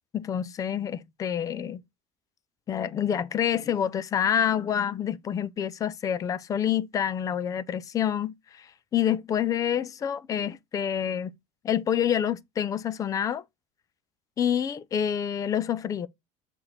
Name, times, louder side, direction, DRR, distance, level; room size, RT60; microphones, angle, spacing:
voice 1, 0.1-1.8 2.7-8.7 8.9-11.3 11.6-13.4 14.4-16.1, left 9 dB, 20° left, 0.4 m, -27 dB
7.5 x 4.4 x 4.0 m
cardioid pair, 175°, 16 cm